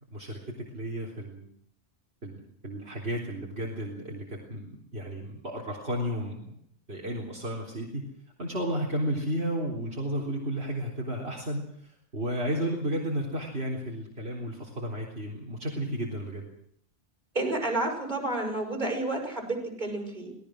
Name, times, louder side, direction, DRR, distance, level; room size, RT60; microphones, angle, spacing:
voice 1, 0.1-1.5 2.2-6.5 6.9-8.1 8.4-16.5, equal, 65° right, -2 dB, 4.0 m, -33 dB
voice 2, 17.3-20.3, right 2 dB, 45° right, 0 dB, 6.4 m, -30 dB
24.0 x 18.5 x 6.3 m, 0.66 s
omnidirectional pair, 1.1 m